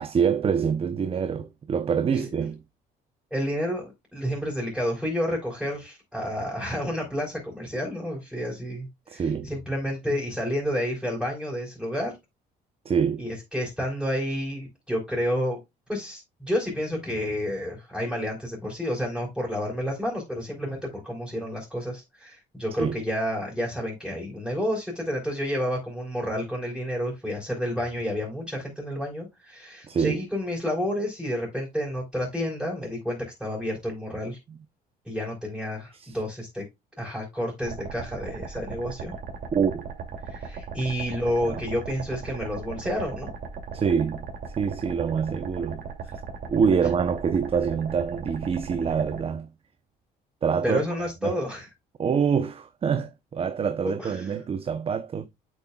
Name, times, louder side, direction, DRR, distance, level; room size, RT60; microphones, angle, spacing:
voice 1, 0.0-2.6 9.1-9.5 12.8-13.3 22.8-23.0 29.9-30.2 34.5-34.6 35.9-36.2 39.5-39.9 41.5-41.6 43.7-44.3 44.6-45.8 46.5-49.5 50.4-50.8 51.2-51.4 52.0-55.3, right 6 dB, 35° right, 0.8 m, -25 dB
voice 2, 3.3-12.2 13.2-15.6 15.9-34.4 35.0-36.6 37.0-39.1 40.3-43.3 50.6-51.7 53.8-54.3, equal, ahead, 4.4 m, -30 dB
sound 1, 37.6-49.2, right 5 dB, 60° right, 2.6 m, -37 dB
8.3 x 7.2 x 2.3 m
cardioid pair, 110°, 17 cm